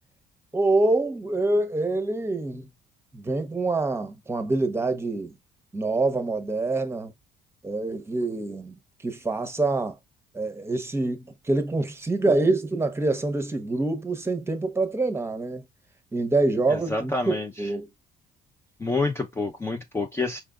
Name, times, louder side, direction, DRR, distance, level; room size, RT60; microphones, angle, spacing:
voice 1, 0.5-2.7 3.1-5.3 5.7-7.1 7.6-8.7 9.0-10.0 10.3-15.6 16.1-17.9, right 2 dB, 15° right, 0.8 m, -26 dB
voice 2, 16.7-17.7 18.8-20.4, left 3 dB, 15° left, 0.5 m, -28 dB
4.5 x 3.4 x 2.4 m
cardioid pair, 110°, 17 cm